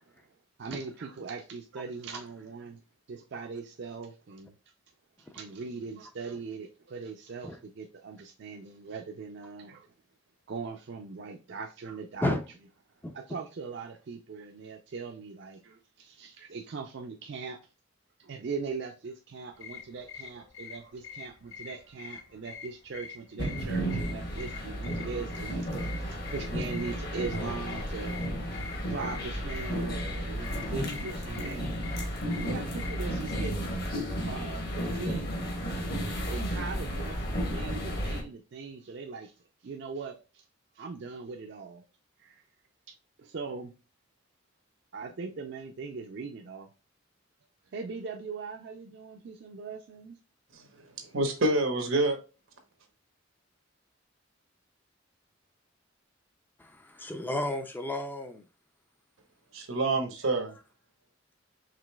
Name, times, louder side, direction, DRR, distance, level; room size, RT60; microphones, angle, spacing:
voice 1, 0.6-2.8 3.1-4.5 5.3-9.9 10.5-12.3 13.1-17.6 18.2-28.6 28.9-33.8 34.3-35.4 36.3-39.3 39.6-40.4 40.8-41.8 42.2-42.4 43.2-43.7 44.9-46.7 47.7-50.2, right 4 dB, 60° right, 0.4 m, -40 dB
sound 1, 19.5-33.7, left 7 dB, 85° left, 0.7 m, -46 dB
sound 2, 23.4-38.2, equal, 50° left, 1.1 m, -33 dB
voice 2, 50.5-52.2 59.5-60.6, right 2 dB, 90° right, 1.0 m, -28 dB
voice 3, 56.6-58.4, left 1 dB, 10° left, 0.3 m, -32 dB
4.9 x 3.2 x 2.2 m
head